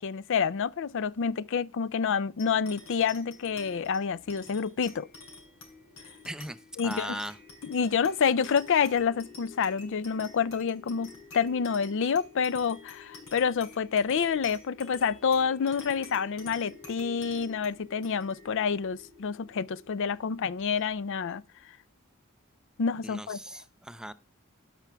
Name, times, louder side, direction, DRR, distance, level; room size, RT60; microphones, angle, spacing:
voice 1, 0.0-5.1 6.8-7.2 7.6-21.4 22.8-23.4, left 6 dB, 60° left, 0.4 m, -28 dB
sound 1, 2.4-21.2, left 4 dB, 75° left, 3.6 m, -49 dB
voice 2, 6.2-7.4 23.0-24.1, right 1 dB, 5° right, 0.4 m, -39 dB
17.5 x 5.9 x 3.4 m
head